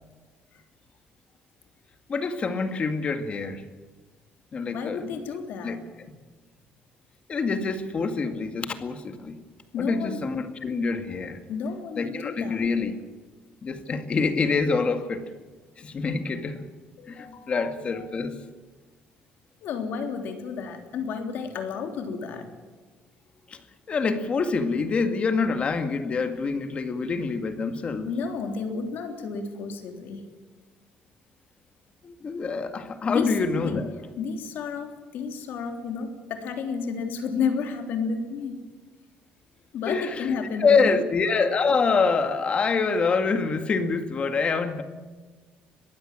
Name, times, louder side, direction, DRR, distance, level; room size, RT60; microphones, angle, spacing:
voice 1, 2.1-3.6 4.5-5.2 5.6-5.8 7.3-9.4 9.8-11.4 12.0-12.9 13.6-15.3 15.8-16.6 17.1-18.4 23.5-23.6 23.9-28.1 32.0-33.9 39.9-44.8, left 4 dB, 35° left, 8 dB, 2.0 m, -26 dB
voice 2, 4.7-5.8 9.7-10.2 11.5-12.7 17.0-18.1 19.6-22.5 28.0-30.2 33.1-33.8 34.2-38.6 39.7-41.1, left 5 dB, 70° left, 5 dB, 3.4 m, -32 dB
22.0 x 15.5 x 9.0 m, 1.4 s
cardioid pair, 150°, 4 cm